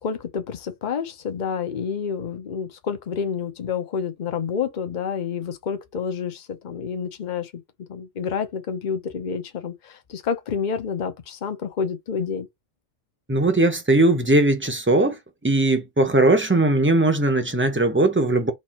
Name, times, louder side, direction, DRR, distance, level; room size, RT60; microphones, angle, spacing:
voice 1, 0.0-7.6 7.9-12.5, left 6 dB, 40° left, 0.9 m, -29 dB
voice 2, 13.3-18.5, right 2 dB, 10° right, 0.8 m, -19 dB
4.4 x 2.6 x 4.3 m
omnidirectional pair, 1.3 m